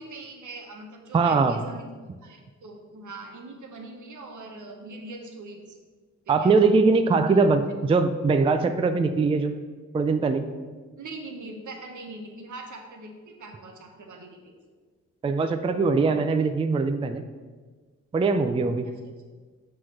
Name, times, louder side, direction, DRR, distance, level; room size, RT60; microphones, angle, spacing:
voice 1, 0.0-5.8 6.3-6.5 7.3-7.4 11.0-14.5 18.8-19.1, right 2 dB, 75° right, 2 dB, 1.0 m, -42 dB
voice 2, 1.1-1.6 6.3-9.6 9.9-10.5 15.2-17.2 18.1-18.9, right 4 dB, 20° right, 8 dB, 0.3 m, -22 dB
6.2 x 3.2 x 5.8 m, 1.4 s
cardioid pair, 75°, 31 cm